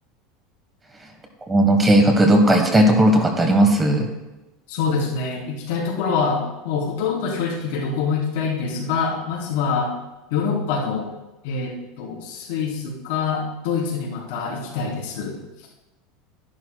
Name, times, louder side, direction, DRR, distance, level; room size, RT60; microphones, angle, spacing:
voice 1, 1.5-4.1, right 1 dB, 15° right, 4 dB, 1.4 m, -16 dB
voice 2, 4.7-9.9 10.3-11.1 11.4-15.4, left 5 dB, 75° left, -2 dB, 3.2 m, -25 dB
13.0 x 11.5 x 2.3 m, 1.0 s
supercardioid pair, 135°, 0 cm